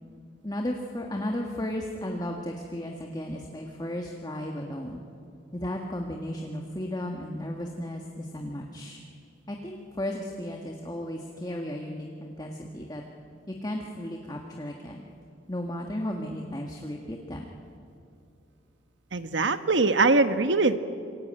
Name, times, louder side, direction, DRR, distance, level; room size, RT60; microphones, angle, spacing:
voice 1, 0.4-5.0 5.5-9.0 9.5-13.0 13.5-15.1 15.5-17.4, left 1 dB, 20° left, 1 dB, 1.7 m, -34 dB
voice 2, 19.1-20.8, right 3 dB, 80° right, 10 dB, 1.3 m, -22 dB
27.0 x 24.0 x 9.0 m, 2.5 s
head